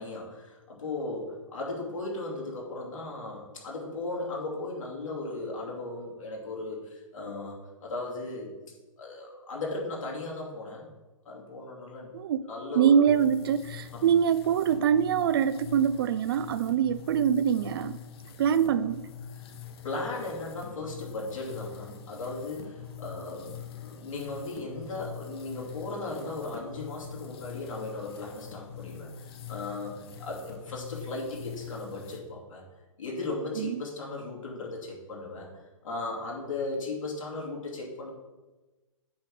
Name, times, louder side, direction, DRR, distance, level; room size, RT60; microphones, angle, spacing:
voice 1, 0.0-8.5 9.0-10.8 11.2-12.1 12.5-13.1 13.9-14.1 19.3-19.6 19.8-32.6 33.0-35.5 35.8-38.1, left 2 dB, 75° left, -2 dB, 2.7 m, -37 dB
voice 2, 12.8-18.0 18.4-19.1 33.6-33.8, right 8 dB, 45° right, 15 dB, 0.4 m, -24 dB
sound 1, 13.1-32.2, left 8 dB, 50° left, 0.9 m, -44 dB
8.4 x 3.6 x 6.1 m, 1.2 s
hypercardioid pair, 140°, 17 cm